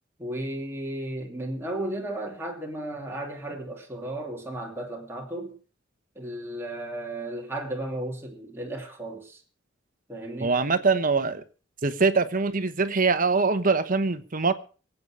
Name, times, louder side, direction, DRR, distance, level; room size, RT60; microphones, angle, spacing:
voice 1, 0.2-5.6 6.1-9.4 10.1-10.6, right 1 dB, 15° right, 2.6 m, -34 dB
voice 2, 10.4-11.4 11.8-14.5, right 4 dB, 45° right, 1.1 m, -23 dB
24.0 x 8.2 x 4.8 m
head